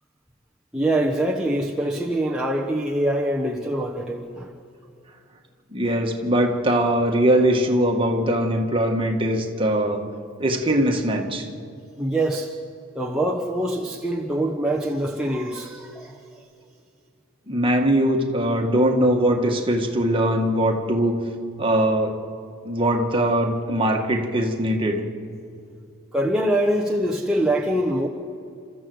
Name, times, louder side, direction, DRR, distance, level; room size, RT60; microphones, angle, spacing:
voice 1, 0.7-4.5 10.1-10.2 12.0-12.5 12.9-16.4 26.1-28.1, right 1 dB, 5° right, -3 dB, 1.1 m, -24 dB
voice 2, 5.7-10.0 10.4-11.5 17.5-21.2 21.6-22.2 22.7-25.0, right 1 dB, 25° right, 2 dB, 1.9 m, -21 dB
30.0 x 14.0 x 8.0 m, 2.5 s
head